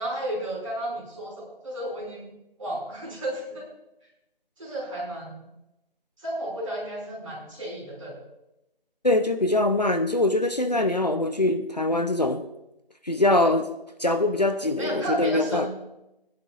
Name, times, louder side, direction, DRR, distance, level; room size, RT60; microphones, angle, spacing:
voice 1, 0.0-2.3 2.6-3.7 4.6-5.5 6.2-8.1 14.8-15.7, right 1 dB, 35° right, -4 dB, 5.7 m, -33 dB
voice 2, 9.0-12.4 13.0-13.7 14.0-15.7, left 2 dB, 45° left, 8 dB, 0.7 m, -23 dB
24.0 x 10.5 x 2.5 m, 0.90 s
figure-of-eight pair, 170°, 29 cm